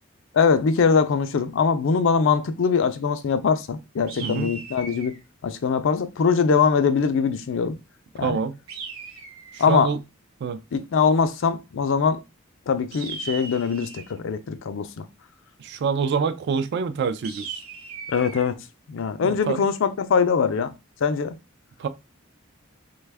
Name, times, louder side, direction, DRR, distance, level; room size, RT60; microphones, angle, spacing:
voice 1, 0.3-5.2 5.4-7.8 8.2-8.4 9.6-9.9 10.7-12.2 12.7-15.0 18.1-18.6 18.9-20.7 21.0-21.3, left 5 dB, 65° left, 0.4 m, -22 dB
sound 1, 4.1-5.2 8.7-9.7 12.9-14.2 17.2-18.5, right 5 dB, 85° right, 0.7 m, -38 dB
voice 2, 4.2-4.5 8.2-8.6 9.5-10.0 10.4-10.6 15.6-17.6 19.2-19.6 21.8-21.9, right 5 dB, 55° right, 0.3 m, -26 dB
3.3 x 2.2 x 3.3 m
head